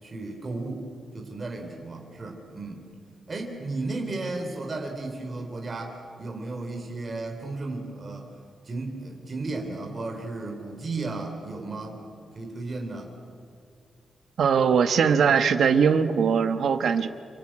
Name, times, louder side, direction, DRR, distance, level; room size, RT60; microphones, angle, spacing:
voice 1, 0.0-0.9 1.1-2.9 3.3-8.3 8.6-12.0 12.3-13.1, right 3 dB, 30° right, 2 dB, 3.5 m, -34 dB
voice 2, 14.4-17.1, right 6 dB, 70° right, 8 dB, 1.4 m, -21 dB
27.0 x 24.0 x 8.8 m, 2.3 s
wide cardioid pair, 170°, 0 cm